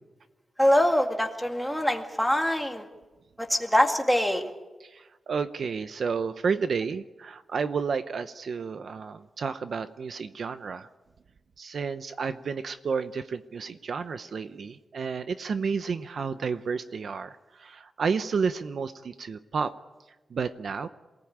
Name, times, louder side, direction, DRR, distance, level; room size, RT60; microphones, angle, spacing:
voice 1, 0.6-2.9 3.4-4.5, equal, ahead, 3 dB, 2.1 m, -24 dB
voice 2, 4.8-10.9 11.6-19.7 20.3-20.9, right 5 dB, 60° right, 11 dB, 0.8 m, -31 dB
27.5 x 18.5 x 8.7 m, 1.2 s
wide cardioid pair, 175°, 0 cm